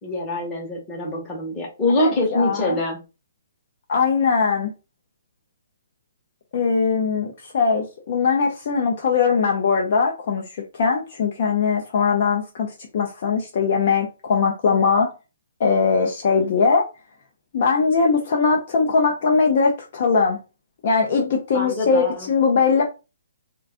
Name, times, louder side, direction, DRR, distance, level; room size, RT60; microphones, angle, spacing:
voice 1, 0.0-3.0 21.5-22.3, left 2 dB, 15° left, 0.8 m, -24 dB
voice 2, 2.0-2.8 3.9-4.7 6.5-10.4 10.7-15.1 15.6-16.9 17.5-20.4 20.8-22.8, left 5 dB, 35° left, 0.4 m, -20 dB
2.4 x 2.2 x 3.5 m
hypercardioid pair, 175°, 0 cm